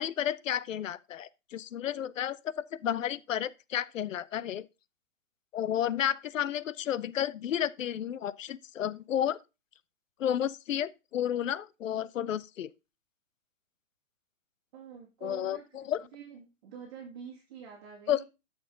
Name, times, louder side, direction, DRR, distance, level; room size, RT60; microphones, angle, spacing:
voice 1, 0.0-4.7 5.5-9.4 10.2-12.7 15.2-16.0 18.1-18.2, left 10 dB, 75° left, 0.7 m, -32 dB
voice 2, 14.7-15.6 16.1-18.2, right 7 dB, 25° right, 1.8 m, -46 dB
10.5 x 6.4 x 3.8 m
hypercardioid pair, 165°, 39 cm